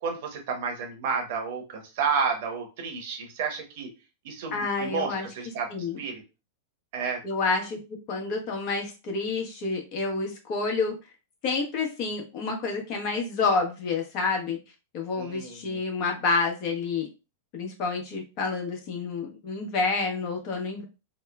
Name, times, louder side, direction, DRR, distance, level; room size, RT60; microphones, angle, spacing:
voice 1, 0.0-3.9 4.2-6.2 6.9-7.2 15.2-15.8, right 5 dB, 60° right, 2 dB, 0.8 m, -31 dB
voice 2, 4.5-5.3 5.7-6.0 7.2-7.8 8.1-11.0 11.4-14.6 14.9-17.1 17.5-20.8, left 4 dB, 50° left, 1 dB, 0.9 m, -28 dB
2.9 x 2.0 x 2.3 m, 0.30 s
hypercardioid pair, 100°, 0 cm